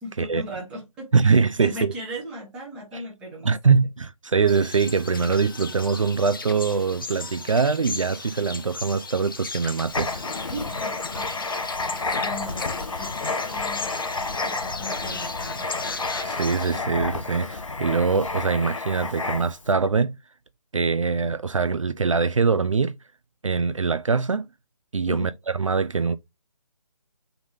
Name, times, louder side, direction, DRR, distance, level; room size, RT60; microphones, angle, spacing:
voice 1, 0.0-3.7 10.5-11.3 12.2-13.9 14.4-15.7 25.1-25.3, equal, 5° right, 0.7 m, -37 dB
voice 2, 1.1-1.9 2.9-3.0 3.4-10.2 16.2-20.2 20.7-22.9 23.4-24.5 24.9-26.2, right 5 dB, 60° right, 0.4 m, -23 dB
sound 1, 4.5-16.8, left 4 dB, 40° left, 0.5 m, -37 dB
Writing, 9.9-19.7, left 3 dB, 60° left, 0.8 m, -30 dB
3.8 x 3.5 x 3.5 m
figure-of-eight pair, 150°, 18 cm